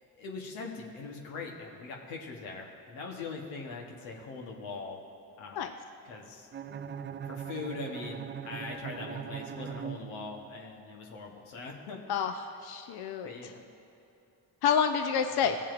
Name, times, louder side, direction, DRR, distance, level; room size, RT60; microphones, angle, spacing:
voice 1, 0.2-5.0 5.4-5.7 6.0-6.5 7.2-12.0 13.2-13.6 15.3-15.6, left 4 dB, 90° left, 0 dB, 1.2 m, -41 dB
Bowed string instrument, 6.5-10.6, right 8 dB, 30° right, 0.3 m, -40 dB
voice 2, 12.1-13.3 14.6-15.6, left 7 dB, 55° left, 6 dB, 0.7 m, -28 dB
16.0 x 7.3 x 2.5 m, 3.0 s
supercardioid pair, 50°, 45 cm